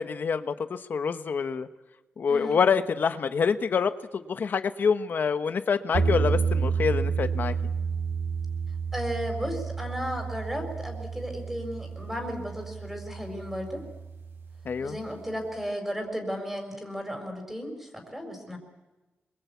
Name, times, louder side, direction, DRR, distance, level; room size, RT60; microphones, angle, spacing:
voice 1, 0.0-1.7 2.2-7.5 14.6-15.0, left 6 dB, 55° left, 11 dB, 1.0 m, -26 dB
voice 2, 2.3-2.6 8.9-13.8 14.8-18.6, equal, 5° right, 3 dB, 4.4 m, -34 dB
sound 1, 5.9-14.9, right 5 dB, 85° right, 5.4 m, -30 dB
27.0 x 23.0 x 8.4 m, 1.1 s
wide cardioid pair, 165°, 4 cm